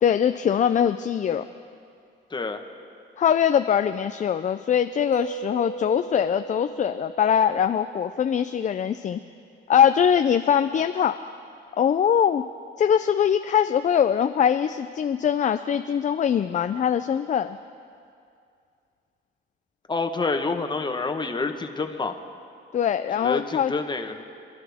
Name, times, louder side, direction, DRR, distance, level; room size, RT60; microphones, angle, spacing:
voice 1, 0.0-1.4 3.2-9.2 9.7-11.2 11.8-12.4 12.8-17.6 22.7-23.7, left 8 dB, 40° left, 10 dB, 0.4 m, -22 dB
voice 2, 2.3-2.6 19.9-22.1 23.2-24.2, left 3 dB, 25° left, 5 dB, 1.2 m, -28 dB
Mallet percussion, 5.1-8.9, right 4 dB, 75° right, 2.4 m, -38 dB
26.5 x 11.5 x 3.6 m, 2.4 s
cardioid pair, 90°, 20 cm